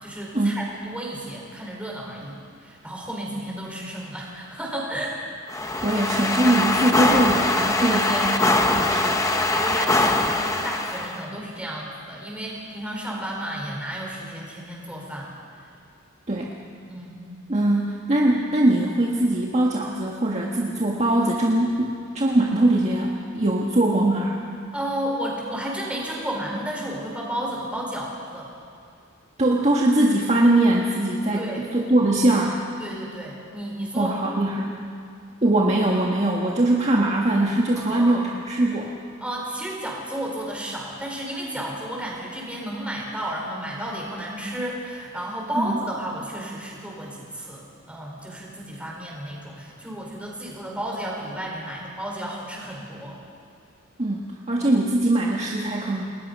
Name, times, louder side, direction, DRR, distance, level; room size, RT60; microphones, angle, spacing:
voice 1, 0.0-5.2 7.8-8.3 9.5-15.3 16.9-17.3 24.7-28.5 31.3-31.6 32.8-34.2 37.7-38.3 39.2-53.2, right 1 dB, 5° right, -3 dB, 4.9 m, -32 dB
sound 1, 5.5-11.2, left 2 dB, 15° left, 1.1 m, -22 dB
voice 2, 5.8-9.2 16.3-16.5 17.5-24.4 29.4-32.6 33.9-34.7 35.4-38.9 45.5-45.8 54.0-56.0, right 1 dB, 30° right, -2 dB, 1.7 m, -22 dB
29.5 x 20.5 x 5.5 m, 2.3 s
head